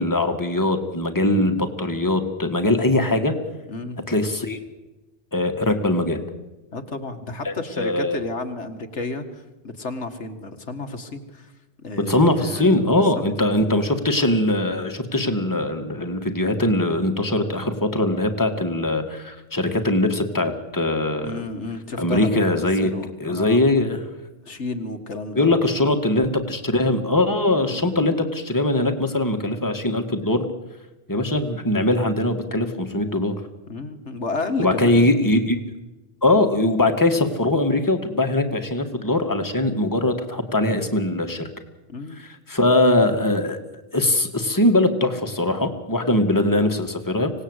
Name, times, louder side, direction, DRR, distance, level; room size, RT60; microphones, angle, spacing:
voice 1, 0.0-3.3 4.1-4.6 5.3-6.2 7.4-8.2 12.1-21.4 22.0-22.9 23.2-24.0 25.4-30.5 31.1-33.4 34.6-35.6 36.2-41.5 42.2-43.6 43.9-47.3, left 2 dB, 15° left, 5 dB, 2.0 m, -21 dB
voice 2, 1.3-1.6 3.7-4.0 6.7-11.5 11.8-13.2 21.2-23.6 24.5-25.5 27.7-27.9 33.7-35.1 41.9-42.2, left 3 dB, 80° left, 7 dB, 2.1 m, -32 dB
25.5 x 18.5 x 8.2 m, 1.1 s
omnidirectional pair, 1.2 m